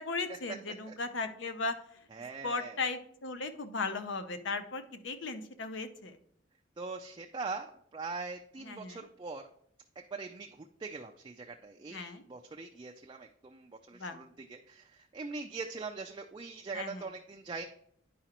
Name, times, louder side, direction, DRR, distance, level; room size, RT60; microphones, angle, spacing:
voice 1, 0.0-1.8 2.4-6.2 8.6-9.0 11.9-12.2 14.0-14.2 16.7-17.1, left 3 dB, 70° left, 9 dB, 0.7 m, -37 dB
voice 2, 2.1-2.8 6.8-9.4 10.1-17.7, right 4 dB, 25° right, 3 dB, 0.3 m, -42 dB
10.0 x 4.8 x 2.9 m, 0.68 s
head